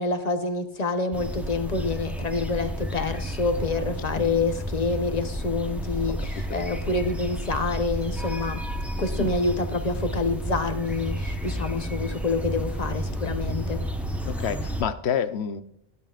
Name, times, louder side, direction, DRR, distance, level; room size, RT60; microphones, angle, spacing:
voice 1, 0.0-8.6 9.0-13.8, left 3 dB, 40° left, 1.0 m, -27 dB
sound 1, 1.1-14.8, equal, ahead, 0.9 m, -31 dB
voice 2, 6.2-6.6 9.1-9.3 14.2-15.6, left 8 dB, 90° left, 1.0 m, -29 dB
12.5 x 8.8 x 2.4 m
omnidirectional pair, 1.1 m